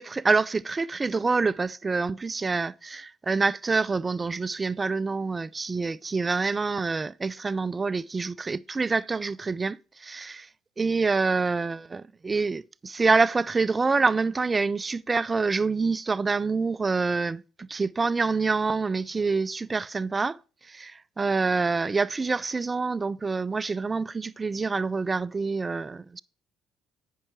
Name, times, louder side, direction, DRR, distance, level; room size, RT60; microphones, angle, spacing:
voice 1, 0.0-10.5 10.8-26.2, right 4 dB, 25° right, 0.3 m, -26 dB
8.7 x 5.5 x 4.5 m
supercardioid pair, 80°, 0 cm